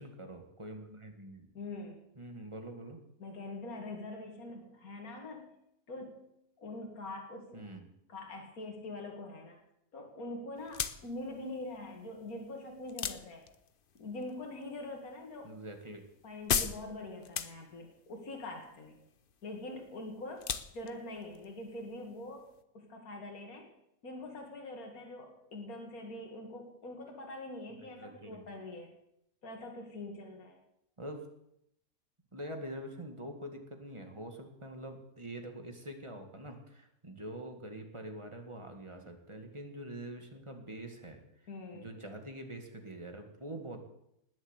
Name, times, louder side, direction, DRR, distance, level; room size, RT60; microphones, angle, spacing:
voice 1, 0.0-1.5 2.2-3.0 7.5-7.8 15.4-16.0 28.0-28.4 31.0-31.2 32.3-41.2 41.7-43.8, right 1 dB, 20° right, 4 dB, 2.0 m, -45 dB
voice 2, 1.5-2.0 3.2-5.6 5.9-6.2 6.6-7.7 8.1-9.6 9.9-13.4 13.9-15.5 16.2-19.0 19.4-23.7 24.0-28.9 29.4-30.6 41.5-41.9, left 2 dB, 70° left, 1 dB, 2.6 m, -44 dB
sound 1, 10.6-22.6, left 7 dB, 45° left, 0.8 m, -40 dB
19.5 x 7.4 x 8.2 m, 0.80 s
omnidirectional pair, 1.6 m